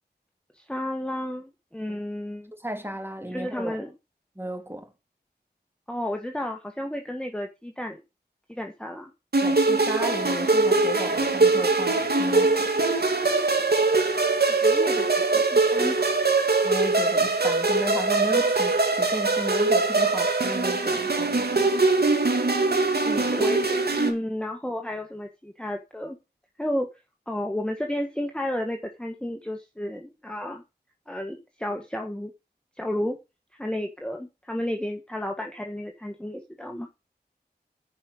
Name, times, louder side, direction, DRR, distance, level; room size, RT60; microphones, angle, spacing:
voice 1, 0.5-2.5 3.3-3.9 5.9-8.0 8.5-9.1 14.6-16.1 23.0-26.2 26.6-26.9 27.3-30.6 31.1-32.3 32.8-33.2 33.6-36.9, left 1 dB, 5° left, 1.6 m, -32 dB
voice 2, 2.6-3.8 4.3-4.9 9.4-13.0 16.6-21.7, equal, 10° right, 3.0 m, -34 dB
sound 1, 9.3-24.1, right 3 dB, 65° right, 2.4 m, -22 dB
10.0 x 5.5 x 6.0 m
wide cardioid pair, 65°, 18 cm